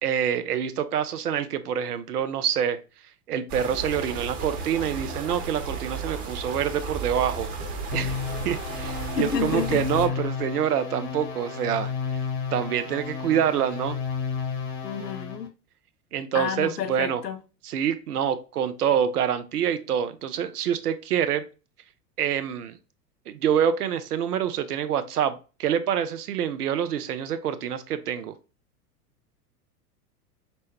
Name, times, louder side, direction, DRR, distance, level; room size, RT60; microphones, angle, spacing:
voice 1, 0.0-2.8 3.3-7.5 7.9-8.2 8.4-12.2 12.5-14.0 16.1-17.2 17.6-21.5 22.2-22.8 23.3-28.3, right 9 dB, 70° right, 0.6 m, -26 dB
sound 1, 3.5-10.1, right 4 dB, 40° right, 1.0 m, -34 dB
sound 2, 7.9-15.5, left 6 dB, 40° left, 1.0 m, -32 dB
voice 2, 9.1-9.8 14.8-15.5 16.3-17.4, left 7 dB, 80° left, 0.7 m, -29 dB
5.4 x 2.1 x 2.8 m
figure-of-eight pair, 90°, 47 cm